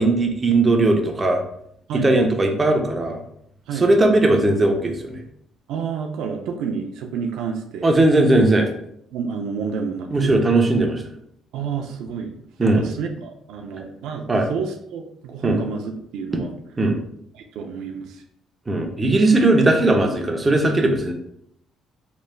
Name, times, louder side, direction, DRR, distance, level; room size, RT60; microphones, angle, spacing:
voice 1, 0.0-1.4 1.9-3.2 3.8-5.2 7.8-8.7 10.1-11.0 12.6-12.9 14.3-14.5 15.4-15.6 16.8-17.0 18.7-21.1, right 2 dB, 25° right, 3 dB, 0.6 m, -18 dB
voice 2, 5.7-7.9 9.1-10.4 11.5-12.3 12.6-16.5 17.3-18.2, right 6 dB, 85° right, 3 dB, 0.5 m, -30 dB
4.0 x 3.2 x 2.2 m, 0.72 s
cardioid pair, 95°, 0 cm